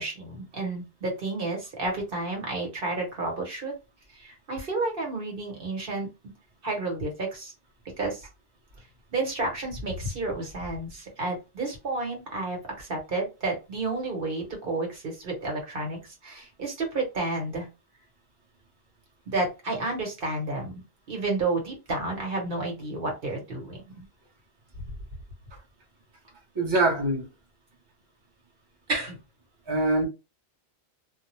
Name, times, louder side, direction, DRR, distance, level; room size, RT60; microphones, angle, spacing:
voice 1, 0.0-3.7 4.1-6.1 6.6-7.5 8.0-8.3 9.1-17.7 19.3-20.8 21.1-24.0 28.9-29.2, right 2 dB, 55° right, 1.1 m, -31 dB
voice 2, 26.5-27.2 29.7-30.1, right 2 dB, 30° right, 0.7 m, -24 dB
2.3 x 2.0 x 2.9 m
omnidirectional pair, 1.1 m